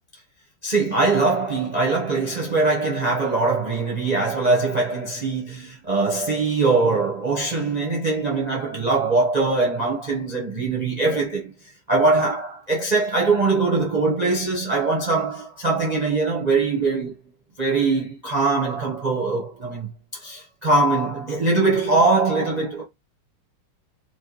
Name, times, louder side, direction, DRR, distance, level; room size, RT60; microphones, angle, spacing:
voice 1, 0.6-11.5 11.9-17.1 17.6-22.8, right 3 dB, 50° right, 0.5 m, -22 dB
4.5 x 2.4 x 2.9 m
omnidirectional pair, 2.2 m